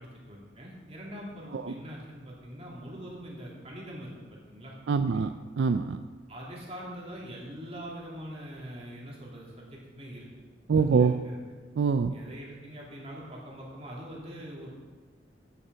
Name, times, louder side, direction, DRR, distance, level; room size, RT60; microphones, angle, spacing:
voice 1, 0.0-4.7 5.1-5.3 6.3-10.3 10.8-11.4 12.1-14.7, equal, 35° right, -4 dB, 2.8 m, -43 dB
voice 2, 4.9-6.0 10.7-11.1 11.8-12.1, right 5 dB, 80° right, 10 dB, 0.4 m, -25 dB
8.8 x 6.7 x 6.9 m, 1.5 s
head